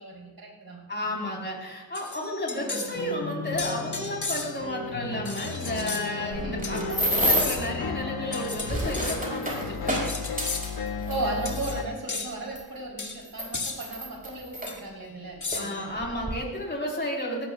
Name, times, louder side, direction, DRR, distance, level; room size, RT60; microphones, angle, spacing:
voice 1, 0.0-1.4 2.5-2.8 6.4-6.9 10.8-16.2, right 2 dB, 75° right, -2 dB, 3.5 m, -36 dB
voice 2, 0.9-10.1 15.5-17.5, left 1 dB, 30° left, -2 dB, 4.0 m, -32 dB
sound 1, 1.9-3.0 3.6-4.7 5.2-6.0 6.6-6.9 7.4-7.8 8.3-9.2 9.9-10.7 11.4-11.8 12.1-12.3 13.0-13.2 13.5-13.8 14.7-14.8 15.4-15.9, left 4 dB, 55° left, 2.0 m, -34 dB
sound 2, 2.9-11.8, left 4 dB, 85° left, 0.9 m, -34 dB
sound 3, 6.3-7.7 8.4-11.7 12.6-12.7 13.2-14.7 15.5-15.6 16.0-16.3, equal, 25° right, 4.9 m, -29 dB
18.0 x 15.0 x 2.4 m, 1.2 s
cardioid pair, 55°, 36 cm